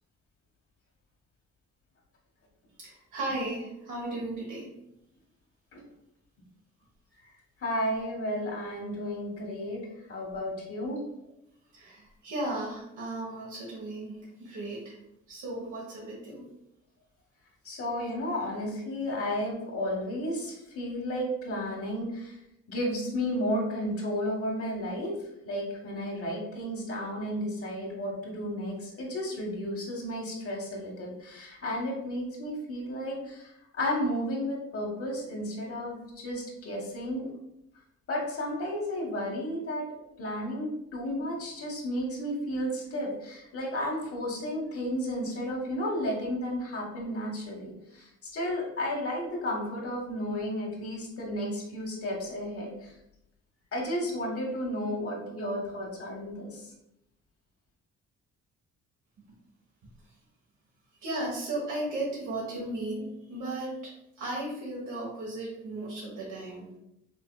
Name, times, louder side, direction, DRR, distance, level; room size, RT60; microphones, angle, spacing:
voice 1, 2.8-4.7 11.7-15.0 15.3-16.4 61.0-66.7, right 2 dB, 75° right, -4 dB, 1.2 m, -35 dB
voice 2, 7.6-9.8 10.1-11.0 17.6-22.4 22.7-25.1 25.4-37.3 38.1-39.9 40.2-52.9 53.7-56.6, equal, 50° left, -1 dB, 1.3 m, -33 dB
5.2 x 2.8 x 2.2 m, 0.82 s
cardioid pair, 90°, 30 cm